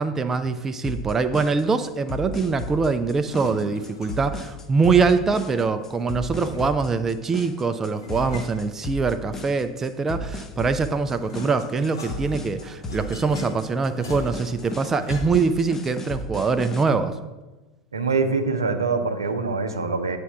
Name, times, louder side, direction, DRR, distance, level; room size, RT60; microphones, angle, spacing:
voice 1, 0.0-17.2, right 4 dB, 15° right, 10 dB, 0.4 m, -23 dB
sound 1, 0.8-16.8, equal, 20° left, 0.7 m, -34 dB
sound 2, 3.1-4.5 5.9-6.9 7.9-9.3 10.5-15.6, left 1 dB, 75° left, 1.3 m, -41 dB
voice 2, 17.9-20.2, right 4 dB, 75° right, 7 dB, 0.6 m, -24 dB
8.2 x 3.4 x 5.9 m, 1.1 s
figure-of-eight pair, 80°, 2 cm